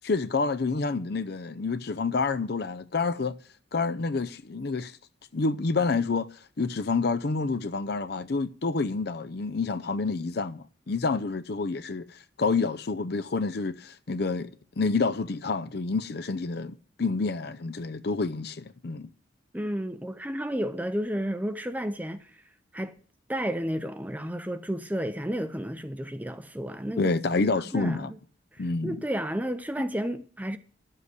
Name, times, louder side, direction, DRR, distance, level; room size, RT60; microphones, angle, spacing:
voice 1, 0.0-3.4 3.7-4.9 5.3-14.5 14.8-19.1 27.0-28.1 28.6-29.0, left 4 dB, 50° left, 0.6 m, -28 dB
voice 2, 19.5-22.4 22.7-22.9 23.3-27.1 27.4-28.2 28.5-30.6, equal, 10° right, 0.6 m, -32 dB
11.5 x 7.6 x 8.1 m
head